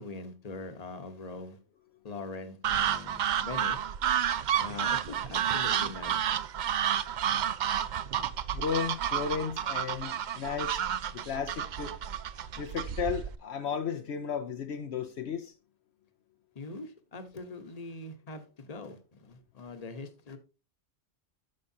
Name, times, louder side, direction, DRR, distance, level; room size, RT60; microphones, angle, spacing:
voice 1, 0.0-1.6 2.0-3.8 4.6-6.5 16.5-20.4, left 3 dB, 35° left, 1.1 m, -42 dB
sound 1, 2.6-13.4, right 9 dB, 60° right, 0.5 m, -30 dB
voice 2, 8.5-10.8 11.1-12.0 12.5-15.5, left 7 dB, 70° left, 0.9 m, -34 dB
13.0 x 5.0 x 2.7 m
omnidirectional pair, 1.2 m